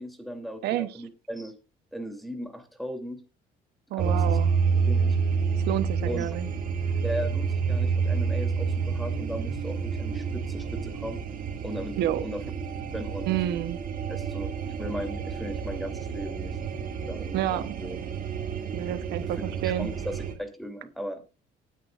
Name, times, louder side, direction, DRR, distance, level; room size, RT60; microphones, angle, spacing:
voice 1, 0.0-1.5 1.9-3.2 3.9-4.4 4.9-5.2 6.1-6.3 7.0-11.2 11.6-12.4 12.9-13.3 14.1-16.6 17.1-18.0 19.3-21.2, equal, ahead, 7 dB, 3.0 m, -37 dB
voice 2, 0.6-1.0 3.9-4.5 5.6-6.5 12.0-12.2 13.3-13.8 17.3-17.7 18.7-19.9, right 12 dB, 80° right, 13 dB, 0.9 m, -29 dB
sound 1, 4.0-20.3, right 5 dB, 55° right, 2.5 m, -29 dB
19.5 x 9.7 x 2.5 m, 0.29 s
cardioid pair, 110°, 17 cm